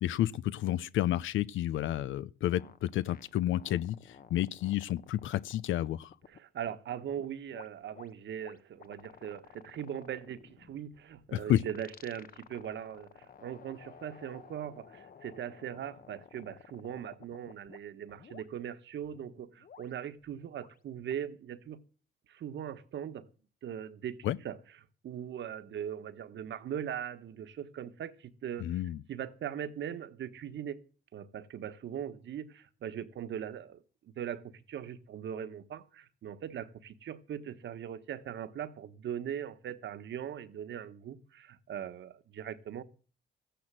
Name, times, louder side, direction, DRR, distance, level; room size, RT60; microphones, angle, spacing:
voice 1, 0.0-6.1 11.3-11.6 24.2-24.4 28.6-29.0, left 13 dB, 75° left, 0.7 m, -31 dB
sound 1, 2.5-6.7 7.1-17.8 18.1-18.5 19.0-21.2, left 7 dB, 45° left, 1.1 m, -54 dB
voice 2, 6.3-21.8 22.3-23.3 23.6-24.6 25.0-28.8 29.1-30.8 31.1-33.8 34.2-42.8, right 9 dB, 65° right, 1.4 m, -40 dB
14.5 x 10.5 x 7.7 m
cardioid pair, 90°, 20 cm